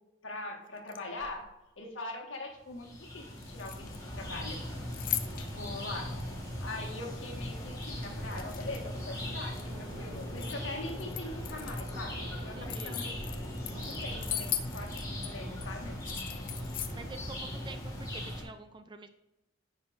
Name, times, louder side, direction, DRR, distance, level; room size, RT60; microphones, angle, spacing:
voice 1, 0.2-1.4 1.8-4.6 5.4-6.1 6.6-13.1 13.7-16.0, left 2 dB, 75° left, 0 dB, 1.7 m, -42 dB
sound 1, 0.8-1.5 3.4-4.2 4.5-5.7 6.2-6.3 7.7-8.9 9.3-10.6 10.9-12.0 12.4-15.3 15.6-15.7 16.0-17.0, left 12 dB, 45° left, 0.5 m, -39 dB
sound 2, 2.7-18.4, equal, 15° left, 1.5 m, -39 dB
sound 3, 6.6-15.1, right 1 dB, 90° right, 1.9 m, -52 dB
voice 2, 12.4-13.0 16.9-17.4 17.6-19.1, right 3 dB, 25° right, 8 dB, 0.4 m, -47 dB
9.8 x 5.7 x 2.6 m, 0.97 s
head